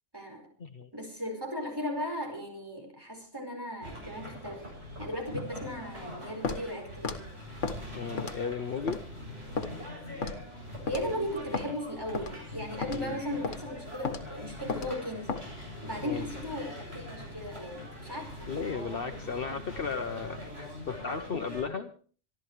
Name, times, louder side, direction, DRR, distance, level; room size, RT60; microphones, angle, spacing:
voice 1, 0.1-0.5 0.9-4.6 5.0-7.1 10.9-15.4 15.8-18.5 19.1-19.3, left 1 dB, 20° right, 2 dB, 5.0 m, -37 dB
sound 1, 3.8-21.6, left 1 dB, 60° right, 7.7 m, -43 dB
Walk footsteps, 6.4-6.6 7.0-7.2 7.6-7.8 8.2-8.5 8.9-9.0 9.6-9.7 10.2-10.4 10.9-11.1 11.5-11.7 12.1-12.3 12.8-13.0 13.4-13.6 14.0-14.2 14.7-14.9 15.3-15.5, left 4 dB, 85° left, 1.6 m, -33 dB
voice 2, 7.9-9.0 12.9-13.2 16.0-16.3 18.5-21.9, left 5 dB, 55° left, 7 dB, 1.1 m, -35 dB
26.0 x 12.5 x 3.2 m, 0.41 s
omnidirectional pair, 1.2 m